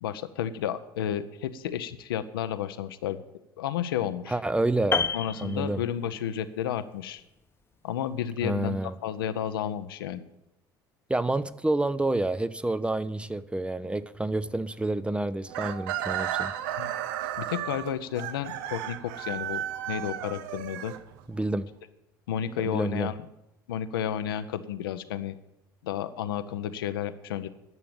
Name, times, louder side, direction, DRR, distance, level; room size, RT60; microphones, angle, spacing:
voice 1, 0.0-3.2 3.6-4.4 5.1-7.2 7.8-10.2 16.8-16.9 17.4-20.9 22.3-23.3 23.7-25.4 25.8-27.5, left 9 dB, 75° left, 0.7 m, -32 dB
voice 2, 4.3-5.1 5.4-5.8 8.4-8.9 11.1-16.5 21.3-21.7 22.6-23.1, right 2 dB, 10° right, 0.5 m, -28 dB
Piano, 4.9-6.4 6.6-6.9, left 5 dB, 20° left, 0.9 m, -30 dB
Chicken rooster, 15.5-21.5, right 11 dB, 65° right, 0.6 m, -34 dB
11.0 x 6.9 x 8.8 m
figure-of-eight pair, 65°, 12 cm